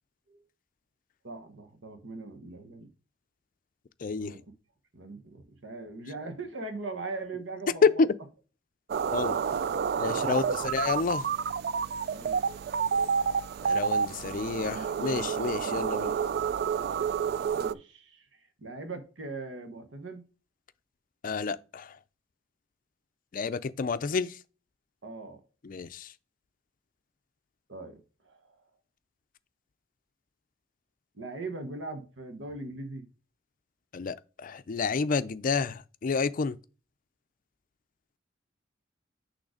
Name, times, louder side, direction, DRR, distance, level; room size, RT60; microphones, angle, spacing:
voice 1, 1.2-2.9 4.2-4.4 4.9-8.0 10.0-10.7 12.1-12.4 17.6-20.2 25.0-25.4 27.7-28.0 28.2-28.6 31.1-33.1, right 3 dB, 90° right, 1.1 m, -40 dB
voice 2, 4.0-4.3 7.8-8.1 9.1-9.4 10.0-11.3 13.6-16.1 21.2-21.9 23.3-24.4 25.6-26.1 33.9-36.6, left 4 dB, 50° left, 0.4 m, -29 dB
sound 1, 8.9-17.7, right 6 dB, 55° right, 0.3 m, -29 dB
6.4 x 3.3 x 4.9 m
head